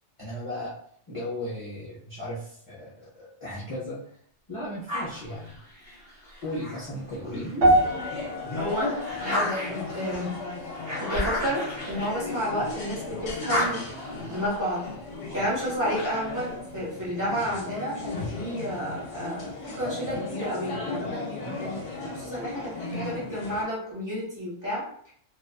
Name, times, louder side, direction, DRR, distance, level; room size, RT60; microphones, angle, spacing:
voice 1, 0.2-0.8 1.1-4.0 4.5-5.5 6.4-7.8, left 1 dB, 35° left, -9 dB, 0.6 m, -36 dB
sound 1, 4.9-7.6 8.1-12.9 13.2-16.5, left 1 dB, 40° right, 1.0 m, -35 dB
voice 2, 7.3-7.7 8.5-8.9 9.2-10.3 11.0-13.8 14.1-14.8 15.3-24.8, equal, 15° right, -9 dB, 1.1 m, -31 dB
sound 2, 7.6-23.6, left 3 dB, 70° left, 0.9 m, -36 dB
sound 3, 7.6-12.0 12.3-12.7 13.3-13.4, right 1 dB, 80° right, 0.9 m, -28 dB
2.4 x 2.4 x 2.2 m, 0.63 s
omnidirectional pair, 1.3 m